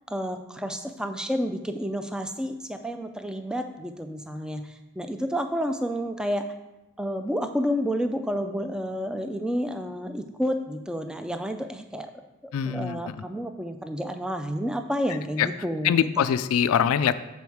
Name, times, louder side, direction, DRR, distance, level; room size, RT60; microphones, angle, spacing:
voice 1, 0.1-6.5 7.0-12.1 12.6-16.2, equal, 5° right, 6 dB, 0.3 m, -30 dB
voice 2, 12.5-13.2 15.4-15.5 15.8-17.2, left 8 dB, 90° left, 13 dB, 0.3 m, -23 dB
7.0 x 4.2 x 4.6 m, 1.0 s
head